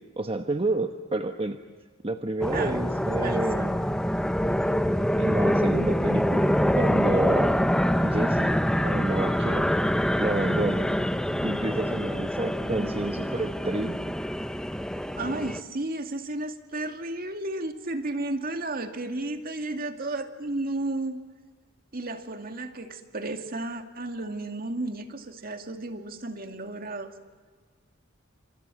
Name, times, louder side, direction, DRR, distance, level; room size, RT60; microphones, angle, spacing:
voice 1, 0.0-1.6 2.0-3.7 5.2-7.5 8.0-8.5 8.8-9.7 10.2-10.9 11.4-14.1, right 2 dB, 30° right, 6 dB, 1.1 m, -29 dB
sound 1, 2.4-15.6, equal, 5° left, 0.8 m, -25 dB
voice 2, 2.5-2.8 3.2-3.8 12.6-13.0 15.2-21.2 21.9-27.1, right 2 dB, 50° right, 6 dB, 2.3 m, -33 dB
28.5 x 27.0 x 7.6 m, 1.5 s
head